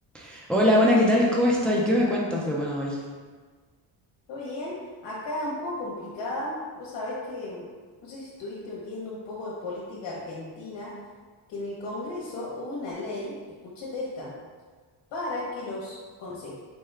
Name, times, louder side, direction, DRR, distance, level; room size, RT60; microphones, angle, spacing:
voice 1, 0.1-3.0, left 1 dB, 5° left, -3 dB, 0.4 m, -22 dB
voice 2, 4.3-4.8 5.0-7.7 8.0-10.9 11.5-14.3 15.1-16.6, left 2 dB, 75° left, -5 dB, 0.9 m, -35 dB
4.5 x 2.2 x 3.2 m, 1.5 s
cardioid pair, 120°, 43 cm